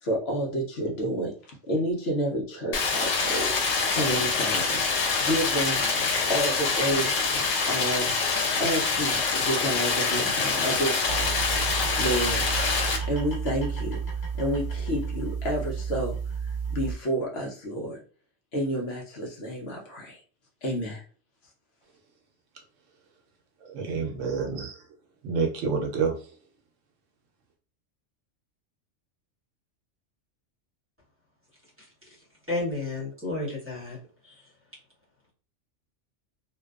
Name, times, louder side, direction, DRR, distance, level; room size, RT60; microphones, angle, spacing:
voice 1, 0.0-4.8 5.2-11.5 11.8-12.4 13.1-14.0 14.4-18.0 18.5-20.2 20.6-21.0, equal, 60° left, 0.8 m, -30 dB
Stream, 2.7-13.0, left 4 dB, 90° left, 1.0 m, -25 dB
sound 1, 11.0-17.0, right 5 dB, 40° left, 1.0 m, -31 dB
voice 2, 23.6-24.8 25.2-26.1, right 5 dB, 80° right, 1.0 m, -28 dB
voice 3, 32.5-34.0 34.2-34.4, left 2 dB, 10° right, 0.8 m, -31 dB
2.5 x 2.2 x 2.3 m
omnidirectional pair, 1.3 m